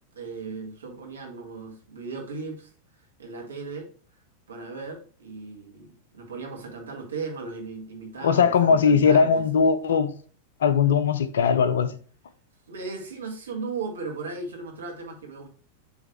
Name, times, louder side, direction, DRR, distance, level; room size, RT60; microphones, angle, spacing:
voice 1, 0.1-2.7 3.2-3.9 4.5-9.4 12.7-15.5, right 4 dB, 70° right, 1.6 m, -36 dB
voice 2, 8.2-10.1 10.6-11.9, left 6 dB, 65° left, 0.6 m, -20 dB
7.2 x 3.2 x 4.6 m
figure-of-eight pair, 90°, 0 cm